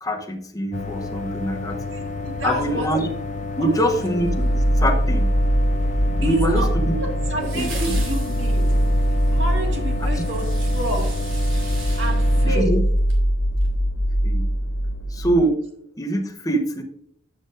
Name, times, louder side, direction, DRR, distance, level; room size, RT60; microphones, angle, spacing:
voice 1, 0.0-1.8 2.4-3.1 3.6-5.3 6.2-7.0 7.4-8.0 10.0-10.3 12.5-12.8 14.2-14.5 15.1-15.6 16.0-16.8, right 1 dB, 15° left, 3 dB, 0.9 m, -24 dB
sound 1, 0.7-12.6, left 3 dB, 35° left, 0.5 m, -31 dB
voice 2, 1.7-2.9 3.6-4.0 6.2-6.7 7.0-8.9 9.3-11.2 12.0-12.8, right 1 dB, 65° right, 1 dB, 1.9 m, -30 dB
sound 2, 4.0-4.9 7.4-13.2 13.6-13.7, right 4 dB, 80° right, 3.0 m, -41 dB
sound 3, 4.2-15.3, equal, 60° left, 1.2 m, -21 dB
11.0 x 7.8 x 2.6 m, 0.70 s
head